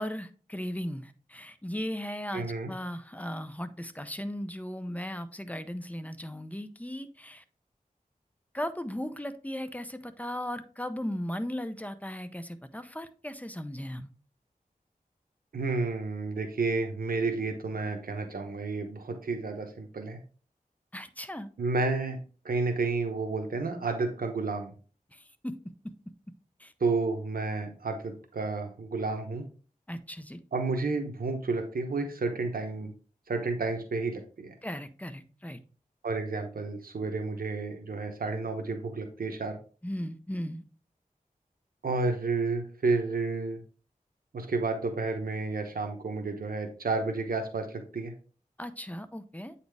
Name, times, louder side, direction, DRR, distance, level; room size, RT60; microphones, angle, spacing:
voice 1, 0.0-7.4 8.5-14.1 20.9-21.5 25.1-25.6 25.8-25.9 26.6-26.7 29.9-30.4 34.6-35.6 39.8-40.6 48.6-49.5, equal, 10° left, 10 dB, 0.6 m, -37 dB
voice 2, 2.3-2.7 15.5-20.2 21.6-22.2 22.4-24.7 26.8-29.4 30.5-32.9 33.3-34.5 36.0-39.6 41.8-43.6 44.3-48.1, right 3 dB, 85° right, 4 dB, 0.9 m, -31 dB
8.3 x 4.2 x 3.3 m, 0.38 s
wide cardioid pair, 75°, 15 cm